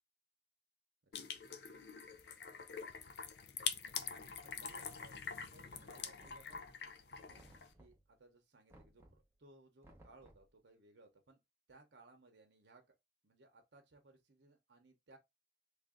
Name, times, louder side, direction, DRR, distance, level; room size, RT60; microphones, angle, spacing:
sound 1, 1.1-7.7, left 7 dB, 65° left, 0.5 m, -45 dB
voice 1, 2.2-2.7 4.4-5.2 5.5-6.7 7.1-7.5 7.8-11.4 11.7-12.8 13.2-15.2, right 2 dB, 70° right, 0.8 m, -64 dB
Knock, 6.2-6.9 7.4-8.1 8.7-9.3 9.8-10.6, right 1 dB, 15° right, 0.7 m, -63 dB
3.3 x 2.6 x 3.7 m
head